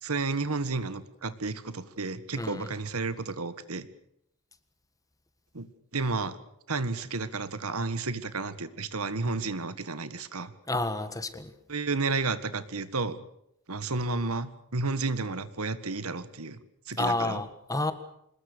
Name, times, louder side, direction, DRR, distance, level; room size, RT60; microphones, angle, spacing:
voice 1, 0.0-3.9 5.5-5.7 5.9-6.4 6.7-10.5 11.7-13.2 13.7-16.6 16.9-17.4, right 3 dB, 70° right, 13 dB, 1.7 m, -32 dB
voice 2, 2.4-2.7 10.7-11.5 17.0-17.9, left 2 dB, 15° left, 11 dB, 1.6 m, -30 dB
26.0 x 21.0 x 6.8 m, 0.76 s
head